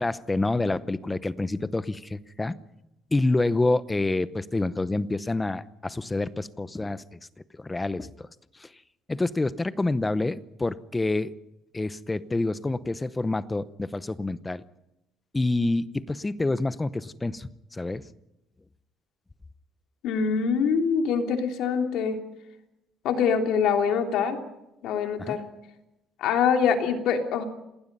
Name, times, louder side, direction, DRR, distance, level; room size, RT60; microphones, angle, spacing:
voice 1, 0.0-2.6 3.1-7.2 7.6-8.3 8.6-8.7 9.1-11.3 11.7-14.6 15.3-18.0 25.2-25.4, left 2 dB, 10° left, 15 dB, 0.7 m, -27 dB
voice 2, 20.0-22.2 23.0-24.4 24.8-25.4 26.2-27.4, left 6 dB, 70° left, 4 dB, 3.2 m, -24 dB
27.5 x 19.5 x 5.5 m, 0.89 s
cardioid pair, 160°, 0 cm